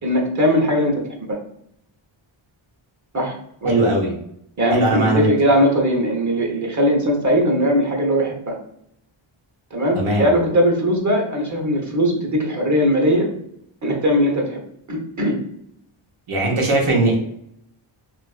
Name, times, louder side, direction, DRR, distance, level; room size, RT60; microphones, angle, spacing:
voice 1, 0.0-1.4 3.1-3.9 4.6-8.6 9.7-13.3 13.8-14.6 14.9-15.4, equal, 35° right, 0 dB, 0.8 m, -19 dB
voice 2, 3.6-4.1 4.7-5.3 9.9-10.3 16.3-17.2, right 2 dB, 85° right, -1 dB, 1.0 m, -19 dB
3.1 x 2.5 x 2.3 m, 0.72 s
wide cardioid pair, 75°, 49 cm